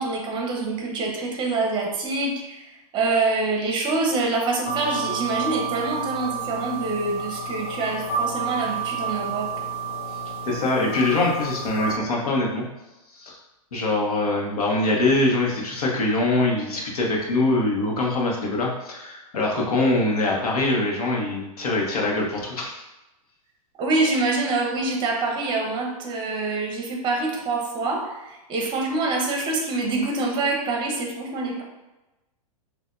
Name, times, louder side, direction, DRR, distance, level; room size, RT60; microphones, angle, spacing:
voice 1, 0.0-9.5 23.8-31.6, right 3 dB, 25° right, 1 dB, 0.9 m, -25 dB
sound 1, 4.7-12.0, right 5 dB, 45° left, 0.4 m, -30 dB
voice 2, 10.4-12.6 13.1-13.4 13.7-22.8, left 2 dB, 80° left, -2 dB, 1.2 m, -23 dB
6.6 x 2.6 x 2.6 m, 1.0 s
hypercardioid pair, 140°, 19 cm